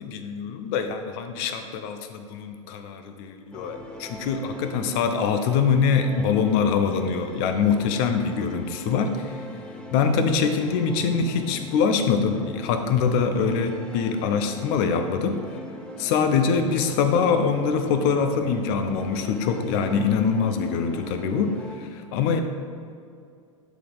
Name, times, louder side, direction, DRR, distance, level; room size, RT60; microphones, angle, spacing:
voice 1, 0.0-9.5 9.9-15.4 16.0-22.4, left 6 dB, 45° left, 7 dB, 0.7 m, -24 dB
sound 1, 3.5-21.8, left 1 dB, 5° left, 0.8 m, -41 dB
11.0 x 4.2 x 4.0 m, 2.4 s
figure-of-eight pair, 90°, 18 cm